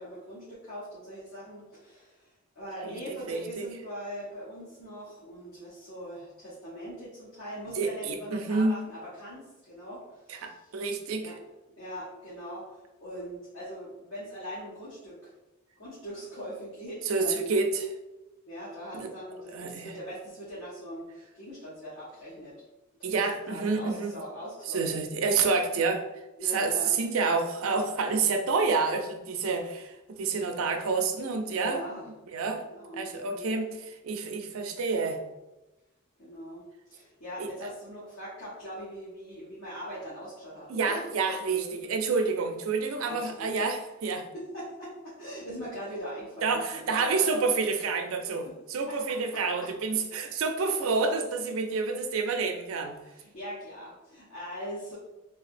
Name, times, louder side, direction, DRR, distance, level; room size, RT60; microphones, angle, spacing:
voice 1, 0.0-10.7 11.2-11.4 11.8-15.3 15.8-17.5 18.5-22.6 23.0-23.1 23.5-24.8 26.4-26.9 31.5-32.0 32.6-33.5 34.4-34.6 36.2-41.9 43.0-43.5 44.3-47.3 48.4-48.5 48.9-49.7 53.0-55.0, equal, 75° left, -10 dB, 1.2 m, -41 dB
voice 2, 3.3-3.7 7.8-8.8 10.3-11.3 17.1-17.9 18.9-19.1 19.5-19.9 23.0-24.1 24.7-26.2 26.5-31.8 32.3-32.6 32.9-35.2 37.4-37.5 40.7-44.3 46.4-53.0, right 4 dB, 75° right, 5 dB, 0.4 m, -28 dB
3.3 x 2.7 x 2.5 m, 1.0 s
head